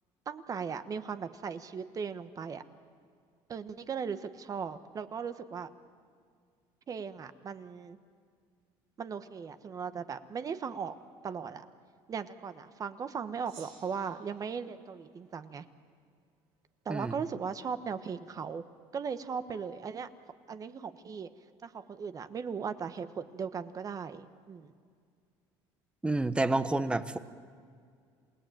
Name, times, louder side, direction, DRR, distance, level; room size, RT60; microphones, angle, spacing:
voice 1, 0.3-2.6 3.5-5.7 6.9-8.0 9.0-10.9 11.2-11.6 12.1-15.6 16.8-18.6 18.9-20.1 20.5-21.3 21.6-24.7, right 6 dB, 35° right, 11 dB, 1.2 m, -38 dB
Gong, 13.5-16.1, right 7 dB, 80° right, 3.6 m, -58 dB
voice 2, 26.0-27.2, right 2 dB, 10° right, 12 dB, 1.1 m, -29 dB
28.0 x 17.5 x 9.1 m, 2.1 s
cardioid pair, 110°, 10 cm